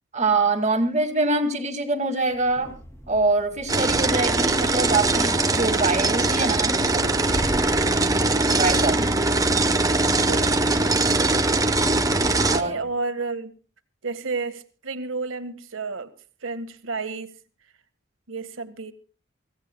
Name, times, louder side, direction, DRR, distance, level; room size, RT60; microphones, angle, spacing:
voice 1, 0.1-2.7 3.1-7.1 8.5-9.1 12.5-12.8, right 3 dB, 35° right, 4 dB, 2.2 m, -24 dB
sound 1, 2.3-12.9, equal, 15° left, 2.5 m, -40 dB
sound 2, 3.7-12.6, right 2 dB, 20° right, 0.9 m, -21 dB
voice 2, 10.2-10.7 12.2-13.5 14.0-16.1 16.4-17.3 18.3-18.9, right 4 dB, 80° right, 9 dB, 1.6 m, -31 dB
25.0 x 16.5 x 2.3 m, 0.37 s
head